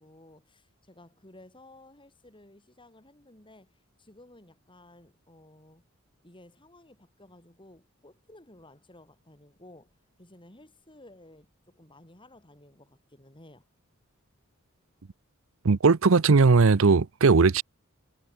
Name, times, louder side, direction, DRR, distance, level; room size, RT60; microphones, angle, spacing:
voice 1, 0.0-5.8 6.2-13.7, left 1 dB, 25° left, 6.1 m, -54 dB
voice 2, 15.6-17.6, right 4 dB, 65° right, 0.6 m, -19 dB
head